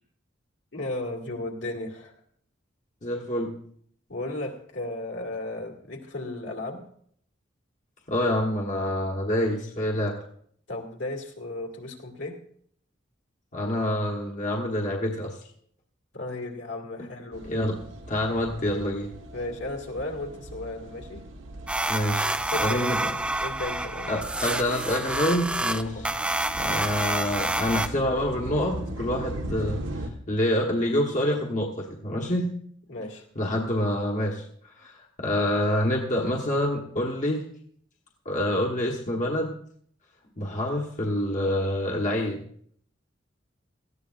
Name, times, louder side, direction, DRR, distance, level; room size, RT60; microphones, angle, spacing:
voice 1, 0.7-2.1 4.1-6.9 10.7-12.4 16.1-17.4 19.3-21.2 22.5-24.1 25.8-26.1 32.9-33.2, left 2 dB, 70° left, 1 dB, 2.3 m, -35 dB
voice 2, 3.0-3.5 8.1-10.2 13.5-15.4 17.0-17.1 17.4-17.8 18.1-19.1 21.9-22.3 22.6-23.1 24.1-26.0 26.6-32.5 33.4-37.4 38.2-39.5 40.4-42.4, left 1 dB, 40° left, -1 dB, 1.3 m, -27 dB
sound 1, 17.3-30.1, right 1 dB, 75° right, 1.4 m, -39 dB
sound 2, 21.7-27.9, right 2 dB, 5° right, 0.4 m, -28 dB
18.0 x 14.0 x 2.5 m, 0.63 s
head